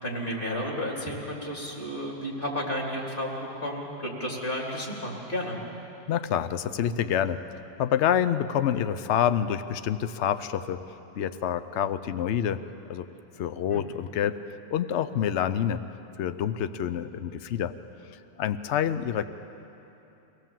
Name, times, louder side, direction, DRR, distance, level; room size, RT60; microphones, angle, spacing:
voice 1, 0.0-5.6 13.7-13.8, equal, 45° left, -2 dB, 3.4 m, -32 dB
voice 2, 6.1-7.4 7.8-10.8 11.2-12.6 12.9-13.1 13.4-14.4 14.7-15.8 16.2-17.7 18.4-19.3, left 9 dB, 70° left, 12 dB, 0.9 m, -27 dB
24.0 x 17.0 x 7.5 m, 2.9 s
omnidirectional pair, 1.3 m